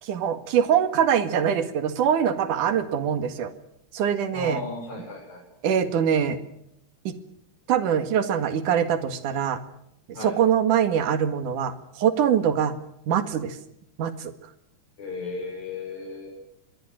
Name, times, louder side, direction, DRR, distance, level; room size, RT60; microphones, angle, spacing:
voice 1, 0.0-3.5 3.9-4.6 5.6-6.4 7.0-7.1 7.7-9.6 10.2-12.7 13.1-13.6 14.0-14.3, right 8 dB, 75° right, 10 dB, 3.3 m, -23 dB
voice 2, 4.3-5.4 10.1-10.4 15.0-16.3, left 3 dB, 65° left, -3 dB, 8.0 m, -35 dB
25.0 x 23.0 x 6.5 m, 0.77 s
omnidirectional pair, 3.7 m